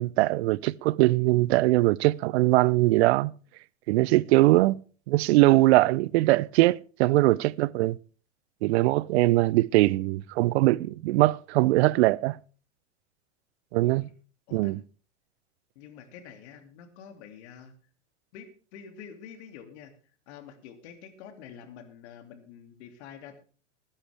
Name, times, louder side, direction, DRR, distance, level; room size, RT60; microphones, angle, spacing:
voice 1, 0.0-3.3 3.9-4.8 5.1-8.0 8.6-12.4 13.7-14.1 14.5-14.8, right 19 dB, 60° right, 0.6 m, -22 dB
voice 2, 13.8-14.1 14.5-14.8 15.7-17.7 18.3-19.9 20.3-23.4, left 7 dB, 60° left, 2.6 m, -47 dB
19.5 x 10.0 x 3.4 m
hypercardioid pair, 100°, 37 cm